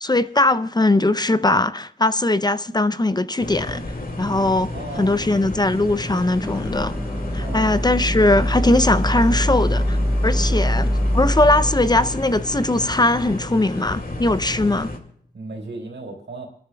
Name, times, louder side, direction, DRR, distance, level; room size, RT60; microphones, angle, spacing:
voice 1, 0.0-3.8 4.2-4.7 5.0-6.9 7.3-10.0 10.2-10.9 11.1-14.9, left 2 dB, 25° left, 0.5 m, -20 dB
sound 1, 3.4-15.0, left 2 dB, 55° left, 2.1 m, -32 dB
voice 2, 4.1-4.4 4.7-5.3 7.3-7.7 10.5-10.6 14.6-14.7 15.3-16.5, right 2 dB, 85° right, 3.8 m, -36 dB
sound 2, 6.4-13.5, equal, 5° left, 1.4 m, -24 dB
28.5 x 13.0 x 2.3 m
wide cardioid pair, 70°, 18 cm